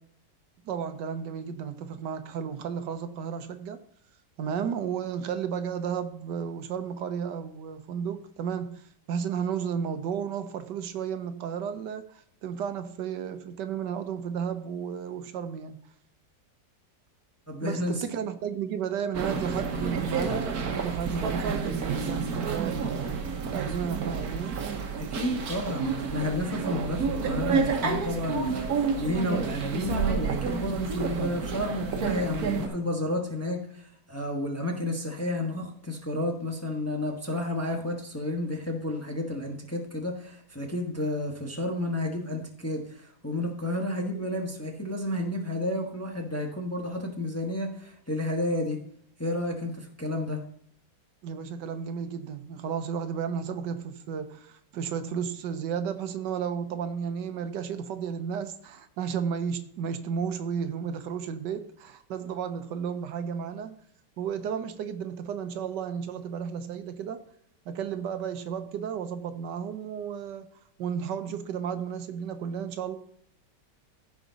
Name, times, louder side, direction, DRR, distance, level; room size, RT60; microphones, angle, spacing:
voice 1, 0.6-3.8 4.4-15.8 17.6-23.0 23.5-24.6 51.2-63.8 64.2-67.2 67.7-70.5 70.8-73.0, right 7 dB, 80° right, 9 dB, 1.4 m, -33 dB
voice 2, 17.5-18.0 25.0-48.8 49.2-50.4, left 1 dB, 10° left, 1 dB, 1.0 m, -31 dB
sound 1, 19.1-32.7, right 5 dB, 60° right, 1.5 m, -30 dB
15.0 x 5.0 x 4.0 m, 0.67 s
omnidirectional pair, 1.9 m